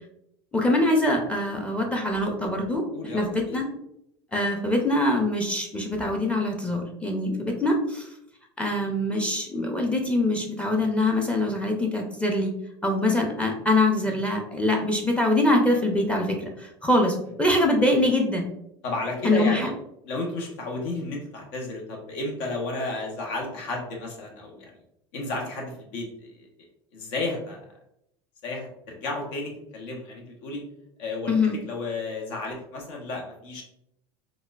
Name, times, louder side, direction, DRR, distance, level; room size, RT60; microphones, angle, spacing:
voice 1, 0.5-2.8 3.1-3.7 4.3-8.1 8.6-12.5 12.8-18.5 19.2-19.7 31.3-31.6, left 1 dB, 10° left, 1 dB, 0.6 m, -24 dB
voice 2, 2.9-3.6 10.6-10.7 14.0-14.2 18.8-19.7 20.0-24.7 25.1-26.5 26.9-27.6 28.4-30.6 31.0-31.3 31.7-33.6, left 2 dB, 70° left, 1 dB, 1.0 m, -32 dB
4.1 x 2.4 x 2.4 m, 0.79 s
supercardioid pair, 115°, 14 cm